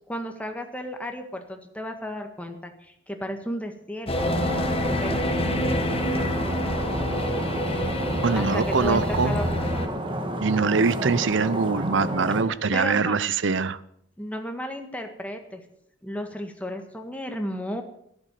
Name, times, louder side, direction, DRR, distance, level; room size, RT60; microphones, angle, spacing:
voice 1, 0.1-4.4 4.9-5.4 8.4-9.9 12.5-13.2 14.2-15.6 16.0-17.8, equal, 5° left, 4 dB, 1.8 m, -34 dB
sound 1, 4.1-9.9, left 1 dB, 30° left, 1.4 m, -27 dB
Stream, 4.2-12.4, right 1 dB, 25° right, 1.8 m, -30 dB
voice 2, 8.2-9.4 10.4-13.8, right 4 dB, 65° right, 17 dB, 0.7 m, -23 dB
14.5 x 10.5 x 6.8 m, 0.72 s
head